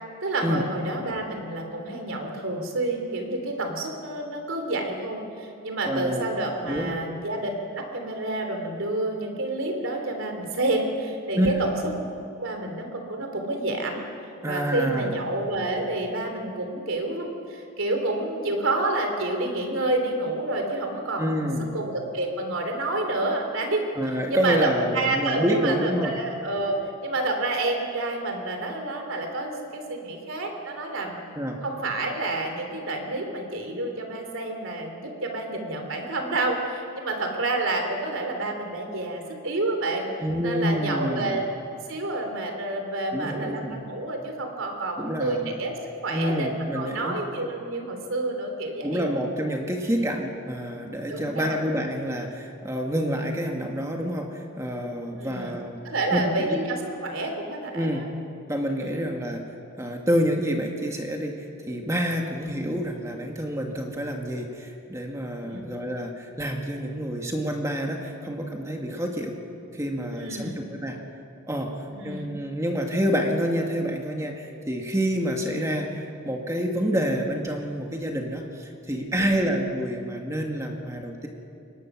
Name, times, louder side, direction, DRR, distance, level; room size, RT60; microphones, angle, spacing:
voice 1, 0.2-11.8 12.4-14.0 14.5-23.9 24.3-31.2 31.6-40.1 40.4-41.4 41.9-45.7 46.0-49.1 49.9-50.1 51.1-51.6 55.2-58.1 58.8-58.9 65.4-65.7 70.1-70.6 71.9-72.4 79.1-79.4, right 2 dB, 70° right, 4 dB, 3.3 m, -29 dB
voice 2, 5.9-6.2 6.6-6.9 11.4-11.7 14.4-15.1 21.2-21.7 24.0-26.2 31.4-31.6 40.2-41.4 43.1-43.8 45.0-45.5 46.1-47.2 48.8-55.8 56.1-56.6 57.7-58.1 58.5-59.4 59.8-69.4 69.7-71.0 71.5-81.3, equal, 15° right, 2 dB, 1.9 m, -28 dB
22.5 x 19.0 x 6.2 m, 2.6 s
head